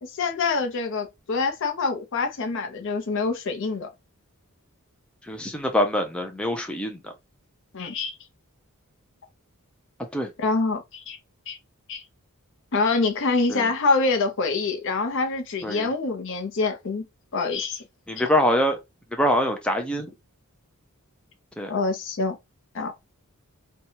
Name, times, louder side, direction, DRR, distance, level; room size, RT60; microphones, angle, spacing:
voice 1, 0.0-3.9 7.7-8.1 10.4-11.2 11.5-11.6 11.9-12.0 12.7-17.0 17.3-17.8 21.7-22.4 22.7-22.9, left 3 dB, 60° left, 0.6 m, -25 dB
voice 2, 5.3-7.1 10.1-10.3 13.5-13.7 15.6-15.9 18.1-18.8 19.1-20.1 21.6-21.7, equal, 5° left, 0.4 m, -24 dB
2.7 x 2.2 x 2.7 m
head